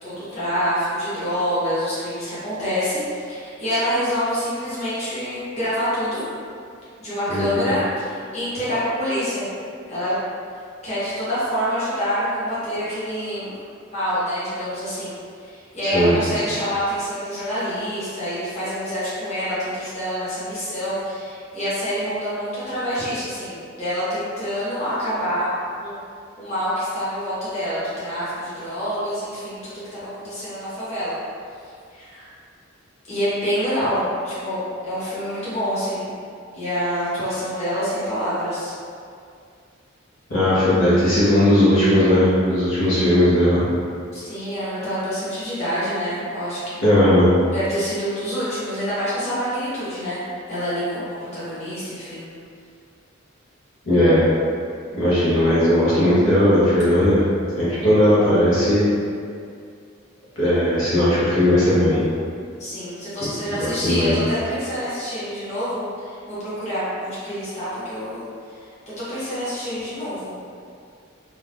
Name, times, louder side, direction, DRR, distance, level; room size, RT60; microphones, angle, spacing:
voice 1, 0.0-6.2 7.0-9.5 9.9-10.2 10.8-13.5 13.9-15.1 15.4-25.5 25.8-26.0 26.4-31.2 31.9-32.3 33.0-36.1 36.5-38.7 44.1-46.8 47.5-52.3 62.6-68.2 69.0-70.3, equal, 35° left, -12 dB, 1.1 m, -26 dB
voice 2, 7.3-7.6 15.9-16.1 40.3-43.7 46.8-47.3 53.8-54.2 54.9-57.2 57.5-58.9 60.4-62.0 63.2-63.3 63.6-64.1, left 1 dB, 75° left, -11 dB, 1.0 m, -17 dB
2.8 x 2.3 x 3.4 m, 2.3 s
head